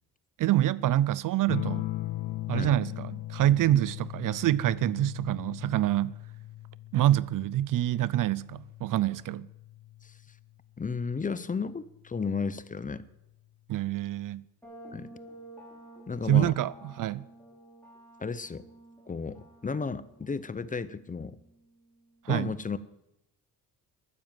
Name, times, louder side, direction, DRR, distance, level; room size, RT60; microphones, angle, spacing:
voice 1, 0.4-1.8 2.5-6.1 6.9-9.5 13.7-14.4 16.3-17.2 22.2-22.5, right 13 dB, 60° right, 0.5 m, -26 dB
sound 1, 1.5-10.6 12.0-12.6, left 16 dB, 80° left, 0.7 m, -39 dB
voice 2, 10.8-13.0 14.9-15.1 16.1-16.5 18.2-18.6 19.1-21.4 22.3-22.8, left 5 dB, 20° left, 0.7 m, -33 dB
sound 2, 14.6-22.2, right 1 dB, 5° left, 5.5 m, -51 dB
13.0 x 9.8 x 7.4 m
cardioid pair, 95°, 37 cm